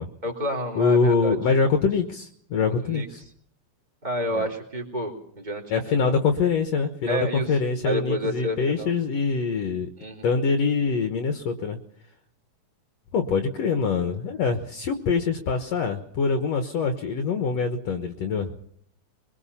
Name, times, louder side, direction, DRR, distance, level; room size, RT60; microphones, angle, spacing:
voice 1, 0.2-1.4 2.8-3.1 4.0-6.1 7.1-7.5 7.8-8.9 10.0-10.3, equal, 15° right, 0 dB, 3.5 m, -29 dB
voice 2, 0.8-3.2 4.3-4.5 5.7-9.9 10.2-11.8 13.1-18.5, left 5 dB, 65° left, 6 dB, 2.2 m, -24 dB
22.5 x 21.5 x 5.7 m, 0.65 s
omnidirectional pair, 3.5 m